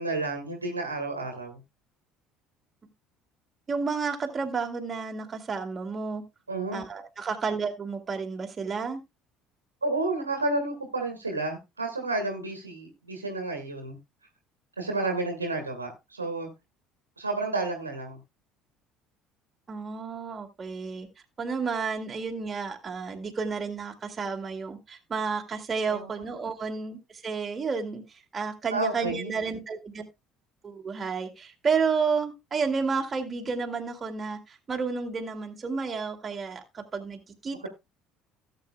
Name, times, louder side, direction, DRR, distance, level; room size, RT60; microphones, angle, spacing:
voice 1, 0.0-1.6 6.5-6.8 9.8-14.0 14.8-16.5 17.2-18.2 25.8-26.0 28.7-29.3, right 2 dB, 85° right, 1.7 m, -31 dB
voice 2, 3.7-6.2 6.7-9.0 19.7-21.1 21.4-30.1 30.6-37.7, right 5 dB, 30° right, 2.2 m, -31 dB
17.0 x 7.9 x 2.3 m
figure-of-eight pair, 60°, 0 cm